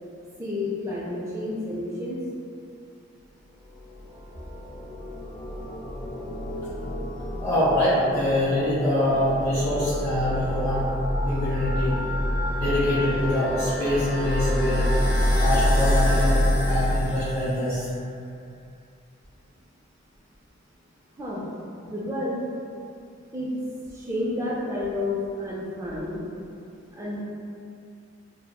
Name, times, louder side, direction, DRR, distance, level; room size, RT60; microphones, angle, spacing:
voice 1, 0.4-2.2 21.2-21.5 21.8-22.4 23.3-23.5 23.9-26.2 26.9-27.2, left 1 dB, 15° right, -6 dB, 0.3 m, -30 dB
sound 1, 3.8-17.9, left 1 dB, 55° left, 0.5 m, -27 dB
voice 2, 7.4-10.9 11.2-12.0 12.5-14.9 15.4-17.9, left 1 dB, 25° left, -17 dB, 0.8 m, -24 dB
2.9 x 2.0 x 2.2 m, 2.4 s
head